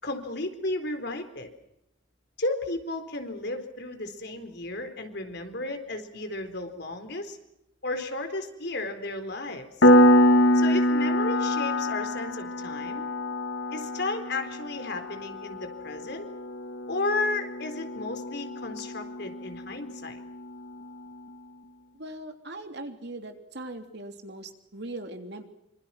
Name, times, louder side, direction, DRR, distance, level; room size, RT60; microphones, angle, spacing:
voice 1, 0.0-1.5 2.4-7.4 7.8-9.9 10.5-13.0 13.7-16.3 16.9-20.2, left 2 dB, 60° left, 7 dB, 4.1 m, -33 dB
Piano, 9.8-20.2, left 1 dB, 80° left, 2.2 m, -25 dB
voice 2, 21.9-25.4, right 2 dB, 60° right, 5 dB, 3.3 m, -40 dB
26.0 x 26.0 x 6.0 m, 0.82 s
head